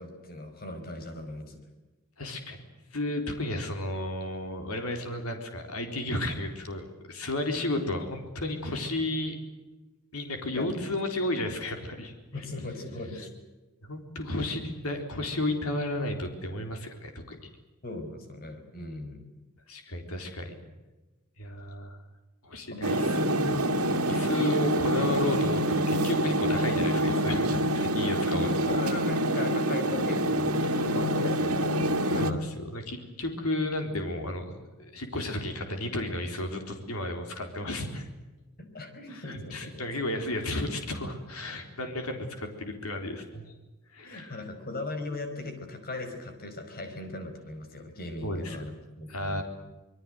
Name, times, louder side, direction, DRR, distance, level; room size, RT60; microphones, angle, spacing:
voice 1, 0.0-1.6 10.5-10.7 12.3-13.3 17.8-19.2 22.7-23.6 28.4-32.4 38.6-39.9 44.0-49.4, left 2 dB, 45° left, 7 dB, 5.2 m, -39 dB
voice 2, 2.2-2.6 2.9-9.3 10.1-12.1 13.2-13.3 13.8-17.4 19.7-20.5 21.4-22.0 22.4-23.7 24.1-28.5 32.1-38.1 39.1-43.4 43.9-44.4 48.2-48.6 49.1-49.4, left 1 dB, 80° left, 5 dB, 4.2 m, -33 dB
sound 1, 22.8-32.3, right 1 dB, 80° right, 2.4 m, -26 dB
26.0 x 22.0 x 7.9 m, 1.1 s
head